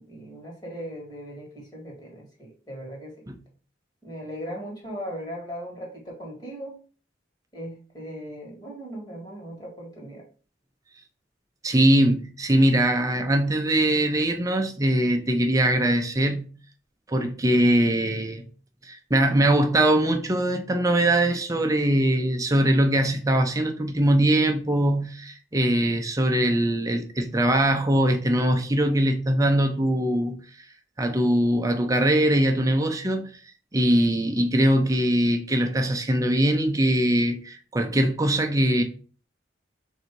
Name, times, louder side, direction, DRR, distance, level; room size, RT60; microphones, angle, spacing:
voice 1, 0.0-3.2 4.0-6.8 7.5-10.2, equal, 20° left, 1.6 m, -38 dB
voice 2, 11.6-16.5 17.1-18.4 18.8-30.4 31.0-33.3 33.7-38.8, right 1 dB, 20° right, 0.6 m, -22 dB
3.9 x 2.7 x 4.5 m
head